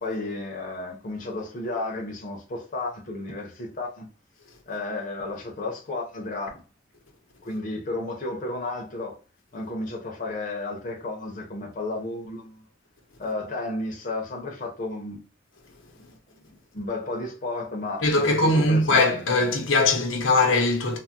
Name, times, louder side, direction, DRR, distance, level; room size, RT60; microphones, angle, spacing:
voice 1, 0.0-4.1 4.7-6.6 7.4-9.2 9.5-12.6 13.2-15.2 16.0-19.3, left 2 dB, 45° left, 0.7 m, -33 dB
voice 2, 18.0-21.0, left 2 dB, 85° left, 0.8 m, -21 dB
3.3 x 2.1 x 2.6 m
head